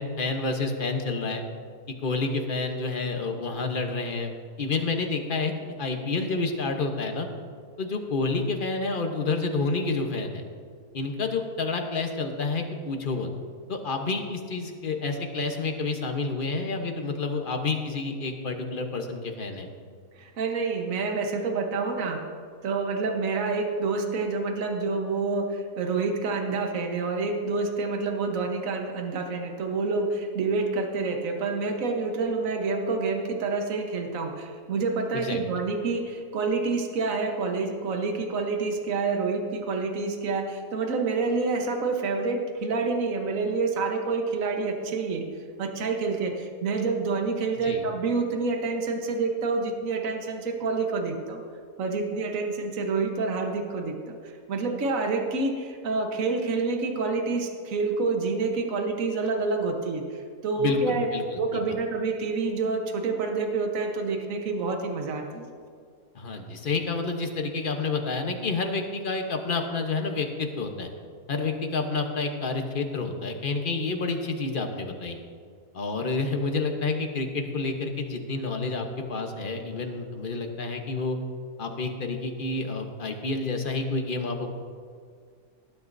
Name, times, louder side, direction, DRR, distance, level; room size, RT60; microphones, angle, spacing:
voice 1, 0.0-1.4 1.9-4.3 4.6-5.5 5.8-7.3 7.8-10.4 10.9-13.3 13.7-19.7 35.1-35.4 47.6-47.8 60.6-61.6 66.1-70.9 71.3-75.2 75.7-81.2 81.6-84.5, left 3 dB, 35° left, 4 dB, 1.1 m, -29 dB
voice 2, 20.2-22.2 22.6-45.2 45.6-51.4 51.8-60.0 60.4-61.1 61.4-65.5, right 4 dB, 60° right, 3 dB, 1.5 m, -28 dB
18.5 x 10.5 x 2.7 m, 2.1 s
omnidirectional pair, 1.7 m